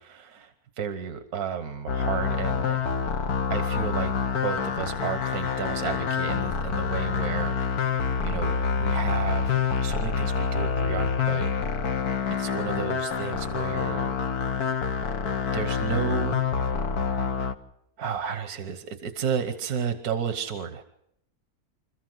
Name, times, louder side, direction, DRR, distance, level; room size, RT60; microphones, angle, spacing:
voice 1, 0.0-2.9 3.5-4.2 4.4-7.9 8.2-11.5 12.3-14.2 15.5-16.8 18.0-20.8, right 7 dB, 80° right, 8 dB, 1.6 m, -32 dB
sound 1, 1.9-17.5, left 6 dB, 85° left, 1.7 m, -27 dB
26.5 x 14.0 x 7.9 m, 0.75 s
omnidirectional pair, 1.6 m